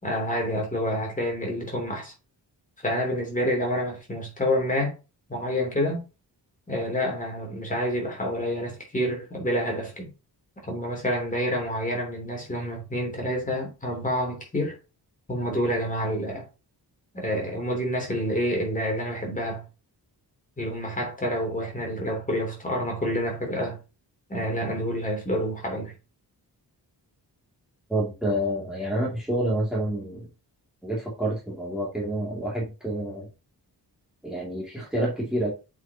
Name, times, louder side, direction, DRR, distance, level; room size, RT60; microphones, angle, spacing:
voice 1, 0.0-2.1 2.8-4.9 5.3-6.0 6.7-10.1 10.6-14.8 15.3-16.5 17.1-19.6 20.6-23.8 24.3-25.9, equal, 20° left, 3.0 m, -28 dB
voice 2, 27.9-30.3 30.8-33.3 34.2-35.5, right 1 dB, ahead, 2.4 m, -28 dB
8.1 x 5.3 x 2.8 m
wide cardioid pair, 155°, 40 cm